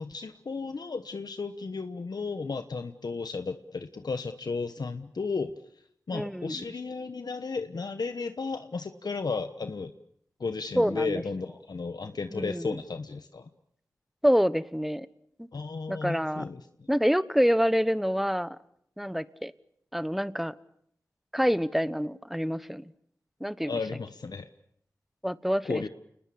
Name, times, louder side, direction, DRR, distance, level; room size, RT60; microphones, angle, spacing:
voice 1, 0.0-5.5 6.1-9.9 10.4-13.5 15.5-16.9 23.6-24.5 25.6-25.9, left 4 dB, 85° left, 9 dB, 1.1 m, -34 dB
voice 2, 6.1-6.5 10.8-11.2 12.3-12.8 14.2-15.1 15.4-15.5 15.9-16.4 16.9-18.5 19.0-19.5 19.9-20.5 21.3-22.9 23.4-23.7 25.2-25.8, equal, 5° right, 16 dB, 1.1 m, -27 dB
29.0 x 20.5 x 8.6 m, 0.69 s
wide cardioid pair, 50°, 7 cm